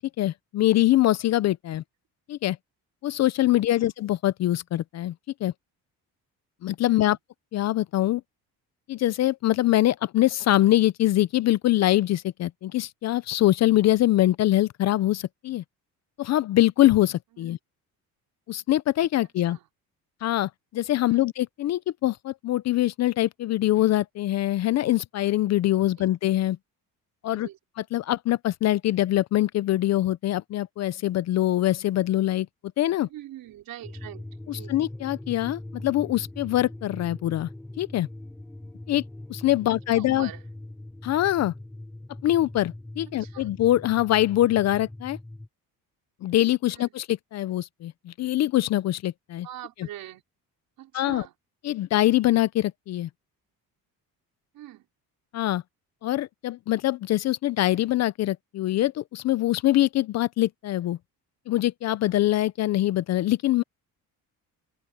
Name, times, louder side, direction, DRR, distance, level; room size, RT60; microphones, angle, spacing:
voice 1, 0.0-1.8 2.3-2.6 3.0-5.1 5.4-5.5 6.6-7.2 7.5-8.2 8.9-15.6 16.2-17.6 18.5-19.6 20.2-26.6 27.2-27.5 27.9-32.5 32.8-33.1 34.5-37.5 37.8-38.1 38.9-39.0 39.3-40.3 41.0-41.5 42.2-45.2 46.2-49.5 50.9-51.2 51.6-53.1 55.3-55.6 56.0-61.0 61.5-63.6, left 14 dB, 45° left, 0.5 m, -23 dB
voice 2, 27.2-27.6 33.0-34.8 39.7-40.4 43.1-43.5 46.7-46.9 49.4-50.2 50.8-51.3 54.5-54.9, right 13 dB, 65° right, 4.4 m, -44 dB
sound 1, 33.8-45.5, left 1 dB, 5° left, 0.6 m, -41 dB
cardioid pair, 165°, 36 cm